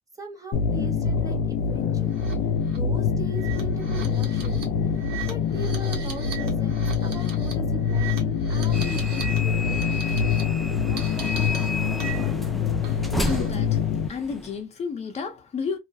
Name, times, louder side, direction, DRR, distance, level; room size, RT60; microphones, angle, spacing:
voice 1, 0.2-2.2 2.8-4.7 5.3-9.6, right 2 dB, 20° right, 0.7 m, -39 dB
sound 1, 0.5-14.1, left 6 dB, 75° left, 0.5 m, -25 dB
sound 2, 2.1-2.3 2.7-2.8 3.3-9.4 9.6-10.4 11.0-12.5 12.8-13.6, right 8 dB, 80° right, 1.0 m, -40 dB
sound 3, 8.7-14.6, left 1 dB, ahead, 0.3 m, -33 dB
voice 2, 13.2-13.8 14.1-15.8, left 5 dB, 40° left, 0.7 m, -31 dB
2.4 x 2.2 x 2.6 m
cardioid pair, 110°, 17 cm